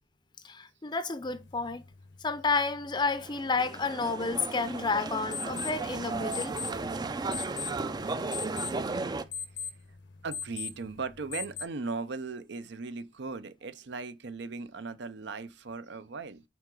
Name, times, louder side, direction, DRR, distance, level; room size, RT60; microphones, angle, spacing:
voice 1, 0.4-1.8 2.2-6.5, left 4 dB, 25° left, 0.6 m, -30 dB
sound 1, 1.2-11.6, left 6 dB, 65° left, 0.8 m, -42 dB
sound 2, 3.1-9.2, right 3 dB, 20° right, 0.4 m, -35 dB
voice 2, 10.2-16.4, right 4 dB, 65° right, 0.6 m, -38 dB
5.9 x 4.6 x 3.8 m
head